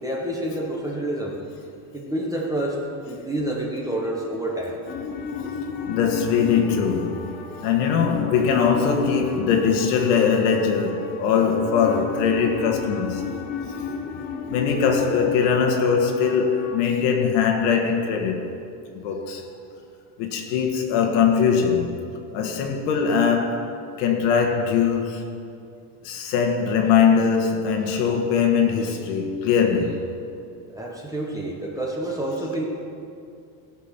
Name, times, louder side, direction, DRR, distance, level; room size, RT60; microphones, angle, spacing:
voice 1, 0.0-1.4 1.9-4.8 30.7-32.6, right 1 dB, 5° right, 1.0 m, -28 dB
sound 1, 4.9-16.8, left 6 dB, 20° left, 0.4 m, -33 dB
voice 2, 5.9-13.2 14.5-18.5 18.9-19.4 20.2-22.0 22.3-23.7 24.0-25.3 26.0-30.0, left 6 dB, 75° left, 1.5 m, -21 dB
17.0 x 6.1 x 5.8 m
cardioid pair, 170°, 48 cm